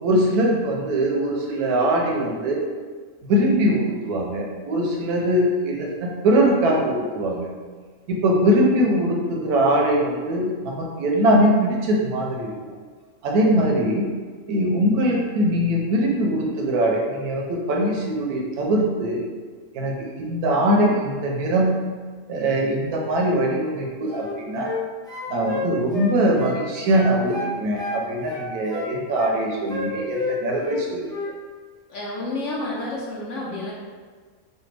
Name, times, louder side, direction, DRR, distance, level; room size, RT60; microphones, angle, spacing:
voice 1, 0.0-2.6 3.2-7.5 8.1-12.5 13.2-14.1 14.5-19.2 19.7-21.7 22.3-24.7 25.3-31.2, right 1 dB, 80° right, -1 dB, 1.1 m, -22 dB
sound 1, 24.1-24.8 25.1-26.6 26.9-28.0 28.3-29.3 29.7-30.8 31.1-31.3, left 3 dB, 5° left, 0.4 m, -30 dB
voice 2, 31.9-33.7, left 2 dB, 65° left, -5 dB, 0.8 m, -30 dB
3.3 x 2.2 x 3.2 m, 1.5 s
omnidirectional pair, 1.6 m